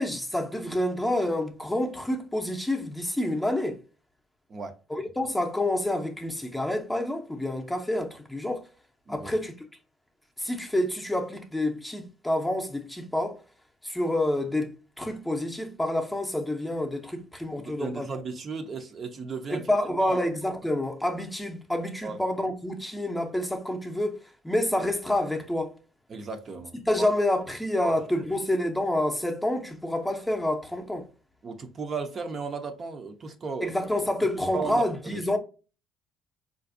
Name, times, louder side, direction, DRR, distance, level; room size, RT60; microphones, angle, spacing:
voice 1, 0.0-3.8 4.9-8.6 9.1-9.5 10.4-13.4 13.8-18.1 19.5-25.7 26.7-31.1 33.6-35.4, left 1 dB, 5° left, 0.6 m, -28 dB
voice 2, 17.6-20.2 22.0-22.2 26.1-26.7 27.0-27.1 27.8-28.3 31.4-33.7 34.5-35.4, right 4 dB, 40° right, 0.5 m, -35 dB
3.8 x 2.5 x 2.5 m
cardioid pair, 100°, 0 cm